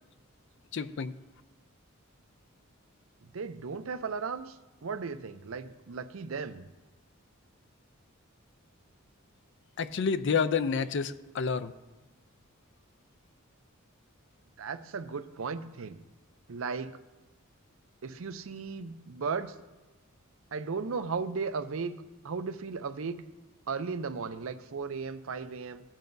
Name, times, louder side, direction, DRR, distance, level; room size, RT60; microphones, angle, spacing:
voice 1, 0.7-1.1 9.8-11.7, left 5 dB, 55° left, 13 dB, 0.4 m, -29 dB
voice 2, 3.3-6.7 14.6-16.0 16.5-17.0 18.0-19.5 20.5-21.9 22.2-23.2 23.7-25.8, right 5 dB, 70° right, 11 dB, 0.6 m, -36 dB
16.0 x 8.9 x 2.6 m, 1.1 s
head